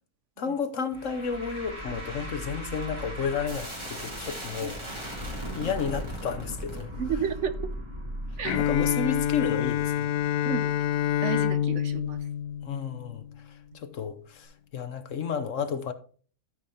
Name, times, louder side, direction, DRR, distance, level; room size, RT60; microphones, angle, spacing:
voice 1, 0.4-4.8 5.5-6.9 8.6-10.1 12.6-15.9, left 6 dB, 60° left, 1.2 m, -32 dB
sound 1, 0.9-12.2, right 1 dB, 20° right, 2.9 m, -38 dB
voice 2, 5.4-5.8 7.0-7.7 8.4-8.6 10.4-10.7 11.2-12.2, right 6 dB, 60° right, 0.9 m, -32 dB
Bowed string instrument, 8.5-13.3, left 10 dB, 85° left, 1.1 m, -27 dB
13.0 x 5.1 x 4.2 m
omnidirectional pair, 1.6 m